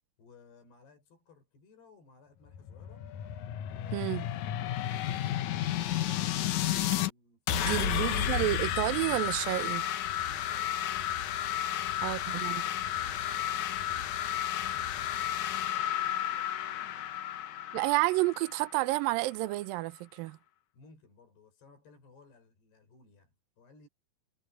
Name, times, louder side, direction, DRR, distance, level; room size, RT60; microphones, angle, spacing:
voice 1, 0.2-3.1 3.7-8.1 10.2-10.8 11.7-17.1 20.7-23.9, left 4 dB, 65° left, 7.8 m, -60 dB
sound 1, 2.5-7.1 7.5-19.0, left 11 dB, 90° left, 1.6 m, -32 dB
voice 2, 3.9-4.2 7.5-9.8 12.0-12.6 17.7-20.4, right 19 dB, 85° right, 2.0 m, -30 dB
omnidirectional pair, 5.1 m